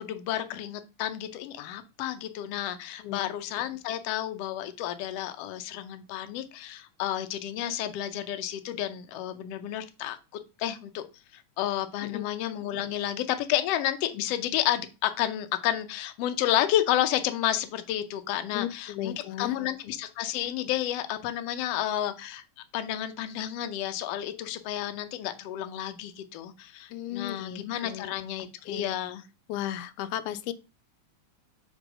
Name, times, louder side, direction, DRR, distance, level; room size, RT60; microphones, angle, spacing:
voice 1, 0.0-10.2 10.6-11.0 11.3-22.4 22.7-29.2, left 12 dB, 70° left, 1.6 m, -31 dB
voice 2, 3.0-3.3 12.0-12.2 18.5-19.6 26.9-28.1 28.7-28.9 29.5-30.5, left 12 dB, 85° left, 2.0 m, -35 dB
5.2 x 4.4 x 6.0 m
omnidirectional pair, 3.5 m